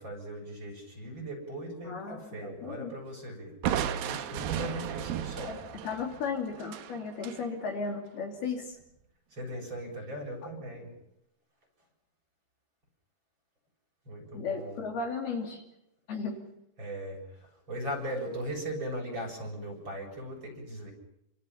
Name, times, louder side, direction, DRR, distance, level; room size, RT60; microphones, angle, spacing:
voice 1, 0.0-3.5 4.0-5.5 9.3-10.9 14.1-14.8 16.8-20.9, right 1 dB, 25° right, 2 dB, 7.6 m, -38 dB
voice 2, 1.8-2.9 5.4-8.8 14.3-15.6 16.1-16.4, left 5 dB, 60° left, 1 dB, 4.4 m, -35 dB
Crushing, 3.6-7.4, right 10 dB, 70° right, 2.4 m, -34 dB
29.0 x 27.0 x 5.8 m, 0.84 s
omnidirectional pair, 5.4 m